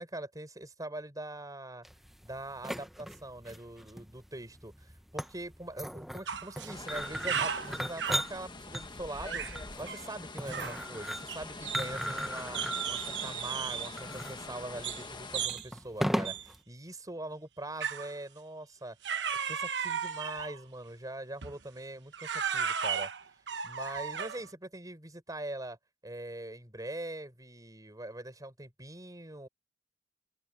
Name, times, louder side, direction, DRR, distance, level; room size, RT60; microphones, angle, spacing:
voice 1, 0.0-1.9 2.2-12.6 12.9-19.0 19.4-23.1 23.6-25.8 26.0-29.5, right 1 dB, 20° right, 4.9 m, -42 dB
sound 1, 1.8-16.6, equal, ahead, 1.0 m, -38 dB
sound 2, 6.3-6.7 7.0-8.3 9.1-9.6 9.9-10.1 10.5-10.8 11.3-12.2 12.5-14.0 14.8-15.1 15.3-15.7 16.2-16.5 17.8-18.1 19.0-20.6 21.4-21.6 22.1-24.5, right 7 dB, 75° right, 1.1 m, -35 dB
sound 3, 6.7-15.5, left 3 dB, 25° left, 1.3 m, -44 dB
open air
head